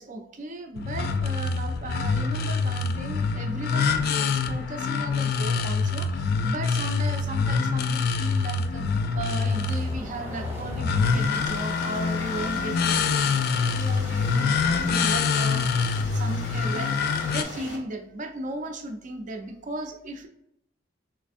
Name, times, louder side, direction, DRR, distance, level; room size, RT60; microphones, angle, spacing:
voice 1, 0.0-16.9 17.3-20.3, right 2 dB, 40° right, 5 dB, 0.5 m, -36 dB
sound 1, 0.8-17.4, left 5 dB, 55° left, 0.3 m, -25 dB
sound 2, 0.8-0.9 1.2-1.6 3.4-3.5 6.5-14.6, equal, 10° right, 0.8 m, -46 dB
sound 3, 11.0-17.8, left 1 dB, 85° left, 0.9 m, -39 dB
3.3 x 3.1 x 2.5 m, 0.78 s
head